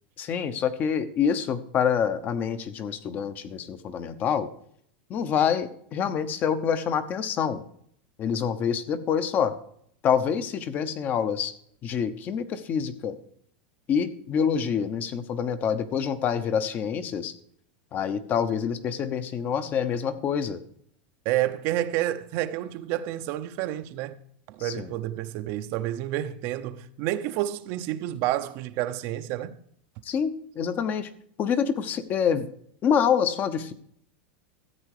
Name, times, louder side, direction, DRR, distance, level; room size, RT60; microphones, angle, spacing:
voice 1, 0.2-4.5 5.1-7.6 8.2-9.5 10.0-11.5 11.8-13.2 13.9-17.3 17.9-20.6 24.6-24.9 30.1-30.3 30.5-31.1 31.4-32.5 32.8-33.7, left 7 dB, 35° left, 1.0 m, -26 dB
voice 2, 21.2-24.2 24.5-29.6, right 14 dB, 50° right, 0.7 m, -29 dB
14.0 x 8.2 x 4.9 m
supercardioid pair, 135°, 5 cm